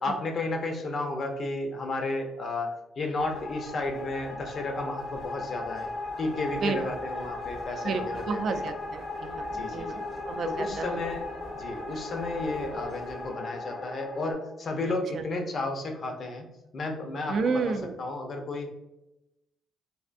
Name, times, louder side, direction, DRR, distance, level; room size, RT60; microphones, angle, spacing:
voice 1, 0.0-5.9 6.2-8.7 9.5-10.0 10.4-11.2 11.5-16.5 16.7-18.7, left 2 dB, 50° left, 4 dB, 0.6 m, -33 dB
sound 1, 3.2-14.3, left 2 dB, 70° left, 1.4 m, -37 dB
voice 2, 7.8-10.9 15.1-15.2 17.3-18.0, right 5 dB, 60° right, 7 dB, 0.3 m, -31 dB
3.4 x 2.4 x 2.5 m, 0.92 s
cardioid pair, 90°, 0 cm